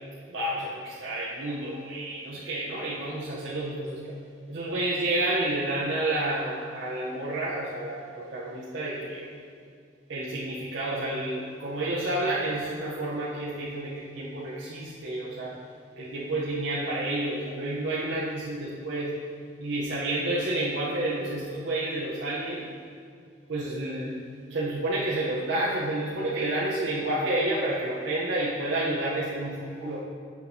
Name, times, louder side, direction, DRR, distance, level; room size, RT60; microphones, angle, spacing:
voice 1, 0.3-4.2 4.5-9.3 10.1-15.6 16.0-19.2 19.6-22.6 23.5-24.2 24.5-30.0, right 1 dB, 80° right, -7 dB, 0.8 m, -30 dB
8.3 x 5.9 x 2.7 m, 2.3 s
head